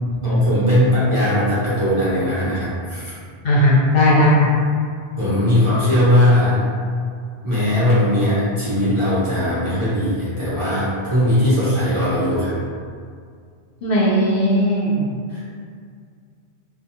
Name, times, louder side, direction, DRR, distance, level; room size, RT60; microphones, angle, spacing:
voice 1, 0.2-3.1 5.2-6.6 7.4-12.5 15.3-15.4, left 1 dB, 35° right, -11 dB, 0.7 m, -19 dB
voice 2, 3.4-4.5 13.8-15.0, left 1 dB, 65° left, -6 dB, 0.8 m, -16 dB
2.3 x 2.2 x 2.8 m, 2.2 s
omnidirectional pair, 1.1 m